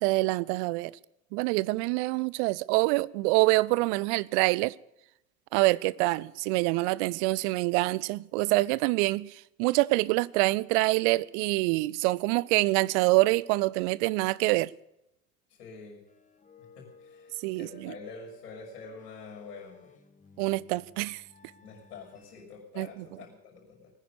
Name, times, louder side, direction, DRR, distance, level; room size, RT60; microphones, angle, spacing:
voice 1, 0.0-0.9 1.3-4.7 5.5-14.7 17.4-17.9 20.4-21.2 22.8-23.0, right 21 dB, 45° right, 0.6 m, -26 dB
voice 2, 15.6-16.0 16.8-19.9 21.6-23.9, left 4 dB, 70° left, 6.0 m, -46 dB
sound 1, 16.1-22.4, left 4 dB, 15° left, 2.4 m, -56 dB
19.0 x 10.0 x 6.9 m
figure-of-eight pair, 70°, 49 cm